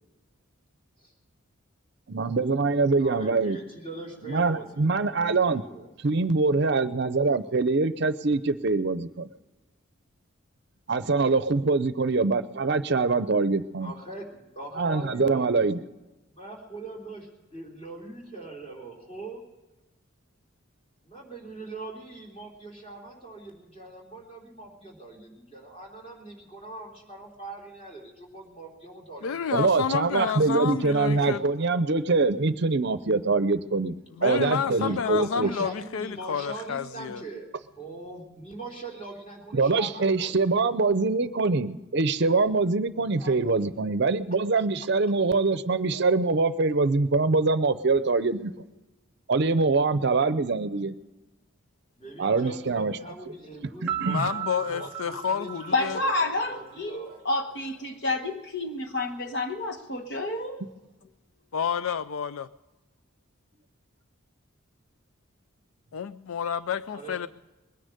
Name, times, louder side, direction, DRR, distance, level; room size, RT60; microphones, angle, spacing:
voice 1, 2.1-3.6 4.2-5.6 6.0-9.3 10.9-13.9 14.8-15.8 29.5-34.0 34.2-35.5 39.5-48.5 49.3-50.9 52.2-53.0 53.8-54.2, right 3 dB, 55° right, 0.6 m, -24 dB
voice 2, 3.0-5.9 13.8-15.8 16.3-19.4 21.0-29.4 30.8-31.3 31.6-31.8 34.2-40.5 43.0-43.6 50.0-50.1 52.0-57.2 66.9-67.3, right 2 dB, 30° left, 3.5 m, -42 dB
voice 3, 29.2-31.4 34.2-37.2 54.0-56.0 61.5-62.5 65.9-67.3, left 7 dB, 75° left, 0.4 m, -30 dB
Piano, 53.9-56.7, right 11 dB, 5° right, 1.1 m, -35 dB
voice 4, 55.7-60.6, left 2 dB, 55° left, 1.2 m, -29 dB
21.5 x 10.0 x 6.6 m
head